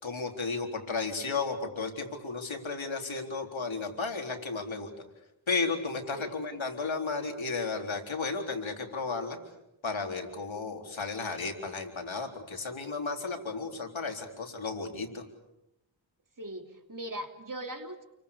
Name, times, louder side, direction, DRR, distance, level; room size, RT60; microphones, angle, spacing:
voice 1, 0.0-4.9 5.5-9.4 9.8-15.2, left 4 dB, 80° left, 3 dB, 4.1 m, -34 dB
voice 2, 6.1-6.5 16.4-18.1, right 1 dB, 45° right, 5 dB, 3.0 m, -40 dB
29.5 x 23.5 x 6.9 m, 0.87 s
wide cardioid pair, 60°, 47 cm